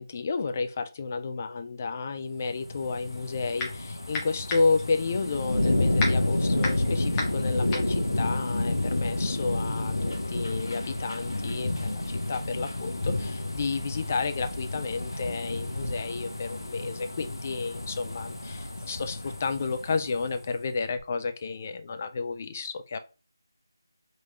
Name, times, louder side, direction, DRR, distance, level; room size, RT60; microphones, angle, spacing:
voice 1, 0.0-10.0 10.3-12.0 12.3-23.0, left 4 dB, 30° left, 8 dB, 0.3 m, -31 dB
sound 1, 2.4-20.6 21.0-21.1, left 2 dB, 65° left, 0.9 m, -30 dB
sound 2, 3.1-3.8 4.1-9.1, left 2 dB, 10° left, 0.8 m, -34 dB
3.7 x 3.1 x 3.0 m, 0.33 s
figure-of-eight pair, 160°, 2 cm